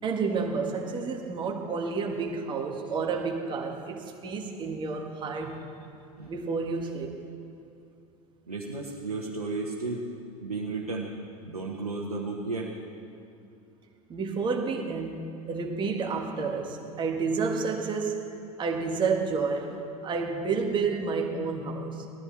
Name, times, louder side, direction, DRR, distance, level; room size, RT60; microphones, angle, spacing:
voice 1, 0.0-5.6 6.3-7.2 14.1-18.2 18.6-22.1, right 4 dB, 25° right, 1 dB, 1.6 m, -30 dB
voice 2, 8.5-10.0 10.4-11.1 11.4-12.8, right 3 dB, 80° right, -3 dB, 1.3 m, -33 dB
19.5 x 14.0 x 3.4 m, 2.6 s
figure-of-eight pair, 80°, 19 cm